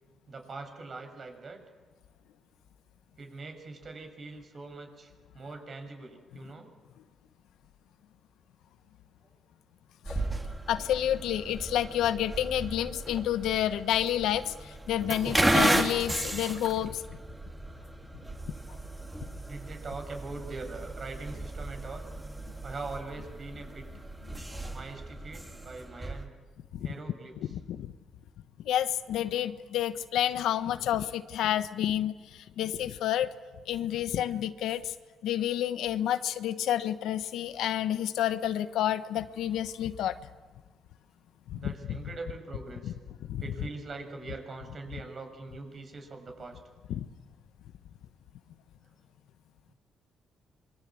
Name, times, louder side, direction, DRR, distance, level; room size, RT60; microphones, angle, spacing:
voice 1, 0.3-1.6 3.2-6.7 19.4-22.1 22.6-23.9 24.7-26.3 26.8-27.6 41.5-42.9 43.4-46.6, right 3 dB, 45° right, 5 dB, 6.6 m, -42 dB
sound 1, 10.0-26.2, right 1 dB, 15° right, 3.2 m, -34 dB
voice 2, 10.7-17.0 26.7-26.9 27.5-27.9 28.6-33.3 33.7-34.9 35.2-40.1 41.5-41.7 42.8-42.9 43.3-43.4 46.9-47.1, left 11 dB, 85° left, 12 dB, 1.1 m, -29 dB
26.5 x 23.5 x 8.6 m, 1.3 s
cardioid pair, 90°, 0 cm